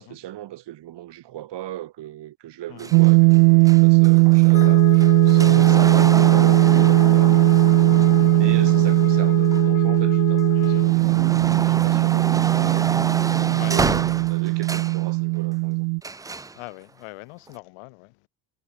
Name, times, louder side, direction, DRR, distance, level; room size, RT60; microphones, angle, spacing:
voice 1, 0.0-7.4 8.3-12.9 13.4-15.9, right 13 dB, 55° right, 2.2 m, -38 dB
sound 1, 2.8-10.0 10.5-15.0 16.0-16.6 17.5-17.6, right 3 dB, 10° right, 0.4 m, -30 dB
sound 2, 2.9-16.0, right 40 dB or more, 80° right, 0.7 m, -17 dB
Wind instrument woodwind instrument, 4.5-10.9, left 14 dB, 40° left, 0.5 m, -29 dB
voice 2, 10.5-11.0 13.5-13.7 16.5-18.3, left 27 dB, 80° left, 6.2 m, -42 dB
supercardioid pair, 80°, 49 cm